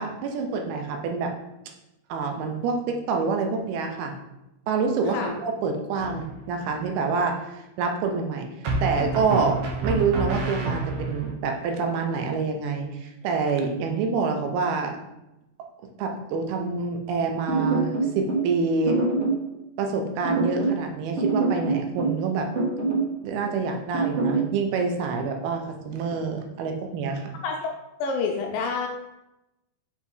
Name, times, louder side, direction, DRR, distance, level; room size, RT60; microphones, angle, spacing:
voice 1, 0.0-1.3 2.1-4.2 4.7-8.5 8.8-15.0 16.0-19.0 19.8-22.5 23.2-27.3, right 4 dB, 85° right, 4 dB, 2.7 m, -27 dB
sound 1, 6.0-6.6 8.6-11.3, right 3 dB, 70° right, 1.8 m, -28 dB
sound 2, 17.5-18.5 18.9-19.4 20.2-20.8 21.2-22.2 22.5-23.1 23.9-24.5, right 3 dB, 50° right, 2.3 m, -24 dB
voice 2, 27.4-27.7 28.0-28.9, left 4 dB, 80° left, 2 dB, 2.1 m, -28 dB
5.9 x 4.4 x 3.7 m, 0.92 s
omnidirectional pair, 4.4 m